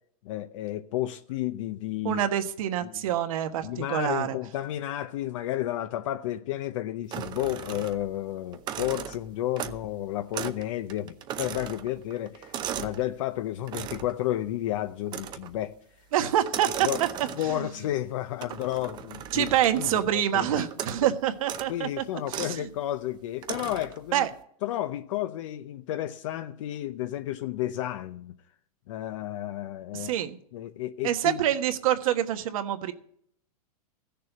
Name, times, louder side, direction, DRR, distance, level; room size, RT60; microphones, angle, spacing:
voice 1, 0.2-2.2 2.8-3.0 3.6-15.7 16.8-17.0 17.4-19.5 19.8-20.7 21.7-24.3 24.6-28.3 28.9-30.1 30.5-31.4, left 13 dB, 55° left, 0.7 m, -32 dB
voice 2, 2.0-4.4 16.1-17.1 17.4-17.7 19.3-22.0 22.3-22.7 24.1-24.3 29.9-30.4 31.0-32.9, right 11 dB, 60° right, 1.3 m, -26 dB
sound 1, 7.1-8.2 8.5-9.9 10.3-10.6 10.9-13.0 13.7-14.2 15.1-15.6 16.4-17.7 18.4-20.1 20.7-21.1 21.4-21.7 22.3-22.6 23.4-24.0, right 9 dB, 20° right, 0.7 m, -37 dB
15.0 x 6.8 x 7.9 m
supercardioid pair, 155°, 19 cm